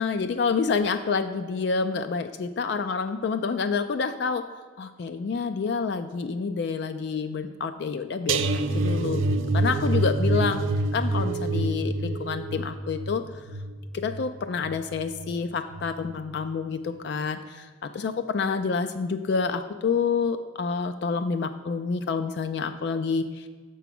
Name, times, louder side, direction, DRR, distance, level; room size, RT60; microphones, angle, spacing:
voice 1, 0.0-4.4 4.8-9.2 9.5-10.6 10.9-13.2 14.0-23.5, left 5 dB, 55° left, 9 dB, 0.3 m, -28 dB
sound 1, 8.3-15.4 15.7-16.0 16.3-16.5, right 2 dB, 80° right, 0.4 m, -27 dB
6.9 x 4.7 x 5.9 m, 1.5 s
head